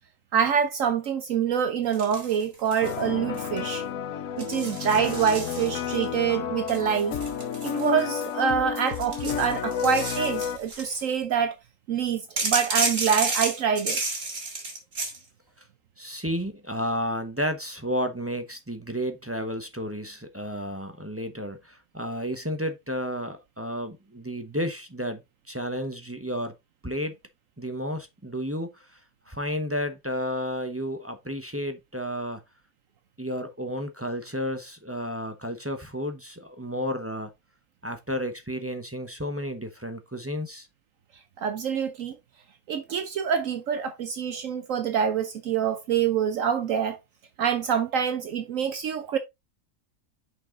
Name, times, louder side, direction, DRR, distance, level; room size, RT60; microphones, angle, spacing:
voice 1, 0.3-3.8 4.4-7.2 7.6-11.6 11.9-14.0 41.4-42.1 42.7-47.0 47.4-49.2, right 7 dB, 65° right, 1.0 m, -26 dB
sound 1, 1.9-3.0 3.3-3.8 4.4-6.0 6.7-8.4 8.9-11.0 12.4-15.2, right 3 dB, 45° right, 2.3 m, -32 dB
sound 2, 2.8-10.6, left 7 dB, 70° left, 1.0 m, -31 dB
voice 2, 16.0-25.2 25.5-26.5 26.8-27.1 27.6-29.0 29.3-32.4 33.2-37.3 37.8-40.7, equal, 15° right, 0.7 m, -32 dB
6.3 x 5.5 x 3.7 m
omnidirectional pair, 1.5 m